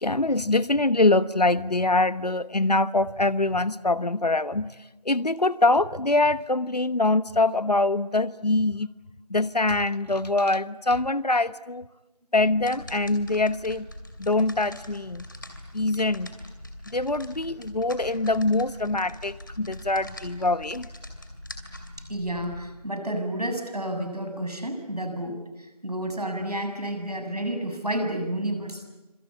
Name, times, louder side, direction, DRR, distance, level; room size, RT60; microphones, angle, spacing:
voice 1, 0.0-4.7 5.0-8.9 9.3-11.8 12.3-13.9 14.2-15.2 15.7-16.3 16.9-20.9, left 2 dB, 80° left, 16 dB, 1.2 m, -24 dB
sound 1, 12.4-22.7, left 1 dB, 30° left, 2.6 m, -43 dB
voice 2, 22.1-25.4 25.8-28.8, right 1 dB, 75° right, 6 dB, 7.2 m, -30 dB
26.5 x 26.0 x 8.5 m, 1.1 s
figure-of-eight pair, 175°, 20 cm